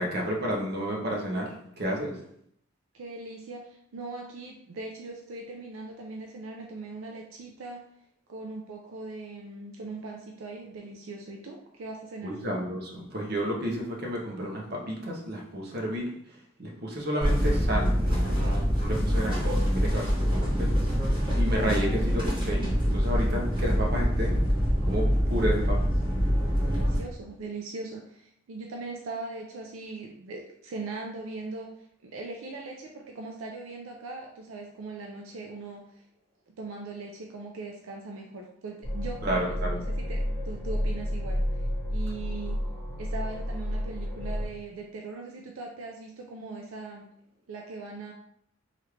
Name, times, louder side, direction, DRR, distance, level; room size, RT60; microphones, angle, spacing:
voice 1, 0.0-2.2 12.2-16.1 16.6-20.8 21.4-24.4 24.8-25.8 39.2-39.8, equal, 50° right, -1 dB, 0.7 m, -31 dB
voice 2, 2.9-7.9 8.3-12.4 26.5-31.7 32.0-36.0 36.6-42.6 43.0-47.0 47.5-48.1, right 3 dB, 80° right, 0 dB, 0.4 m, -40 dB
sound 1, 17.2-27.0, equal, 25° right, 1.2 m, -25 dB
sound 2, 38.8-44.5, equal, 20° left, 1.0 m, -31 dB
3.1 x 2.4 x 3.2 m, 0.71 s
head